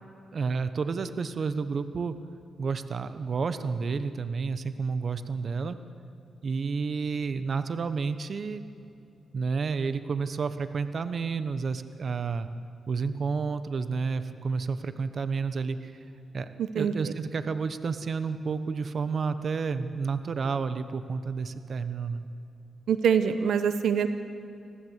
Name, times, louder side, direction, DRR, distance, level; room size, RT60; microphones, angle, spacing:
voice 1, 0.3-2.1 2.6-5.8 6.4-8.6 9.3-12.5 12.9-15.9 16.3-16.5 16.7-22.2, right 5 dB, 55° right, 11 dB, 1.1 m, -30 dB
voice 2, 22.9-24.1, right 7 dB, 80° right, 10 dB, 0.9 m, -24 dB
25.5 x 15.5 x 8.2 m, 2.7 s
cardioid pair, 85°, 0 cm